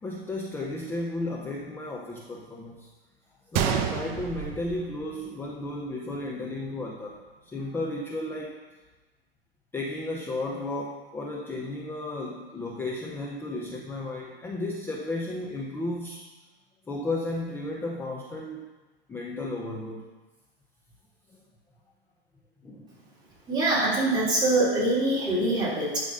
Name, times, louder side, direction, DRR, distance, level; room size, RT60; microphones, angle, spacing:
voice 1, 0.0-2.9 3.5-8.6 9.7-16.2 16.9-18.7 19.1-20.1 22.6-22.9, left 2 dB, 5° left, -1 dB, 0.6 m, -33 dB
Gunshot gunfire, 3.5-5.6 5.9-6.0 6.6-6.8, right 8 dB, 30° right, 0.7 m, -30 dB
voice 2, 23.5-26.0, right 2 dB, 15° right, -7 dB, 3.5 m, -24 dB
11.0 x 5.2 x 5.4 m, 1.2 s
hypercardioid pair, 130°, 31 cm